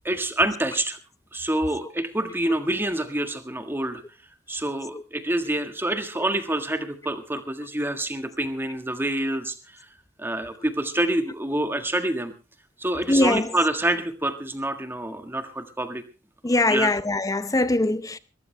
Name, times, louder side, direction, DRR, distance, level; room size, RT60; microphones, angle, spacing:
voice 1, 0.0-1.0 1.3-4.0 4.5-9.5 10.2-12.3 12.8-16.0 16.7-16.9, right 1 dB, 10° right, 1.6 m, -27 dB
voice 2, 13.1-13.5 16.4-18.2, left 2 dB, 20° left, 0.7 m, -22 dB
20.5 x 15.0 x 3.3 m
head